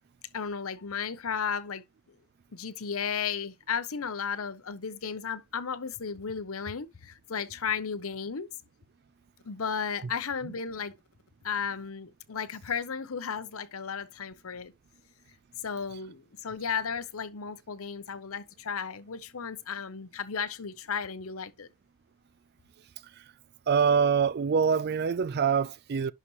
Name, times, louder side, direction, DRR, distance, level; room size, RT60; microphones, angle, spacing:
voice 1, 0.3-1.8 2.5-8.5 9.4-10.9 11.4-14.7 15.6-21.7, left 6 dB, 65° left, 0.8 m, -34 dB
voice 2, 23.7-26.1, right 6 dB, 45° right, 0.4 m, -25 dB
11.0 x 4.0 x 3.1 m
head